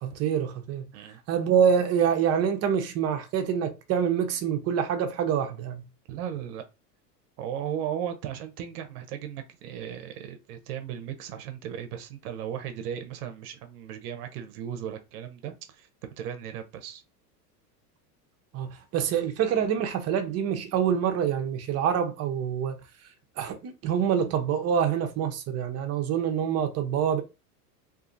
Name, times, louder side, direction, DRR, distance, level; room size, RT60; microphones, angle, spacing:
voice 1, 0.0-0.9 1.3-5.8 18.5-22.8 23.4-27.2, right 8 dB, 30° right, 0.7 m, -26 dB
voice 2, 6.1-6.6 7.4-15.9 16.2-17.0, right 9 dB, 65° right, 0.8 m, -36 dB
2.6 x 2.5 x 2.5 m
hypercardioid pair, 105°, 49 cm